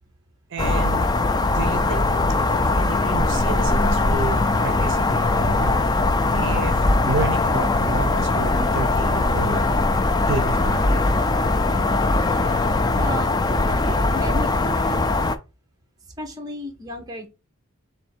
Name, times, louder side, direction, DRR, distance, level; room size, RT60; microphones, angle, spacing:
voice 1, 0.5-1.0 1.5-2.1 2.8-5.8 6.3-9.6 10.3-11.0, right 4 dB, 60° right, 0.6 m, -30 dB
sound 1, 0.6-15.3, left 2 dB, 20° left, 0.3 m, -20 dB
voice 2, 12.9-13.3 13.7-15.1 16.2-17.3, equal, 20° right, 0.9 m, -33 dB
3.5 x 3.2 x 4.4 m
head